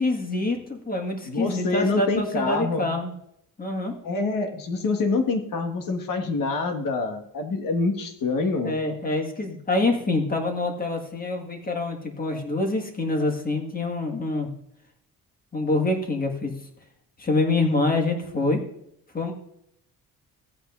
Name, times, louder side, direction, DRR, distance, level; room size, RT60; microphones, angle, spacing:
voice 1, 0.0-3.1 3.6-3.9 8.6-14.5 15.5-16.5 17.2-18.6 19.1-19.3, left 2 dB, 25° left, 3 dB, 1.7 m, -26 dB
voice 2, 1.2-2.9 4.0-8.8, left 3 dB, 65° left, 5 dB, 1.6 m, -26 dB
16.0 x 8.8 x 2.5 m, 0.76 s
cardioid pair, 140°, 35 cm